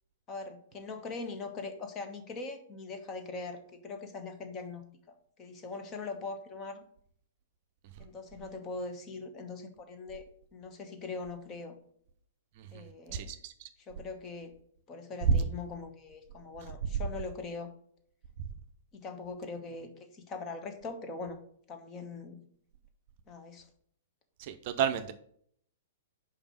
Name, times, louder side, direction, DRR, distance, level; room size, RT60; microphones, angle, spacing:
voice 1, 0.3-6.8 8.0-10.2 10.5-11.8 12.7-13.3 13.9-14.5 14.9-17.7 18.9-21.4 21.7-22.4 23.3-23.7, left 3 dB, 25° left, 6 dB, 1.1 m, -41 dB
voice 2, 13.1-13.5 15.3-15.4 24.4-25.1, right 6 dB, 45° right, 8 dB, 0.6 m, -29 dB
5.3 x 4.9 x 6.1 m, 0.63 s
figure-of-eight pair, 110°, 0 cm